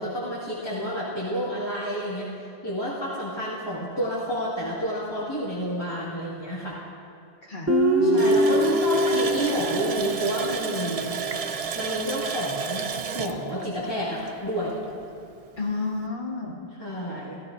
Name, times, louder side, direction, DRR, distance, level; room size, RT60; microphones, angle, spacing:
voice 1, 0.0-2.3 2.6-6.8 8.0-11.2 11.7-14.8 16.7-17.4, equal, 20° left, -10 dB, 2.1 m, -30 dB
voice 2, 7.5-8.5 9.0-9.2 9.5-9.6 15.6-16.6, left 3 dB, 50° left, -2 dB, 1.5 m, -32 dB
Guitar, 7.7-11.0, equal, 15° right, 0.8 m, -23 dB
Water tap faucet, 8.2-14.7 15.0-15.1 15.6-15.7, right 6 dB, 50° right, 0.4 m, -32 dB
16.5 x 14.5 x 2.7 m, 2.5 s
omnidirectional pair, 1.1 m